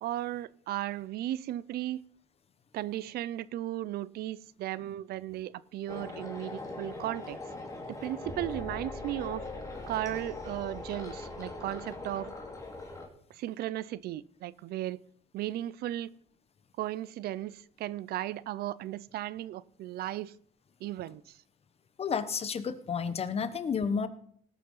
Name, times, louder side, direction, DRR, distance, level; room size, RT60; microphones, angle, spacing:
voice 1, 0.0-2.0 2.7-7.4 7.9-9.5 9.9-12.3 13.3-15.0 15.3-16.1 16.8-20.3 20.8-21.4, right 14 dB, 70° right, 0.6 m, -36 dB
sound 1, 5.9-13.1, left 2 dB, 20° left, 2.8 m, -41 dB
voice 2, 22.0-24.1, left 6 dB, 35° left, 1.1 m, -31 dB
18.5 x 6.3 x 5.6 m
cardioid pair, 110°, 17 cm